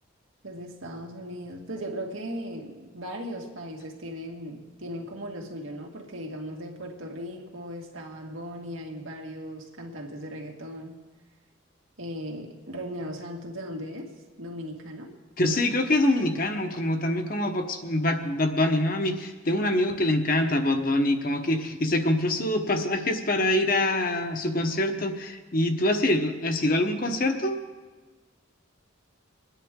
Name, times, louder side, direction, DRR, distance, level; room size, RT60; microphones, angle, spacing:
voice 1, 0.4-11.0 12.0-14.1 14.4-15.1, equal, 85° right, 1 dB, 2.0 m, -37 dB
voice 2, 15.4-27.6, left 1 dB, 45° left, 6 dB, 1.0 m, -25 dB
22.5 x 10.0 x 3.7 m, 1.3 s
head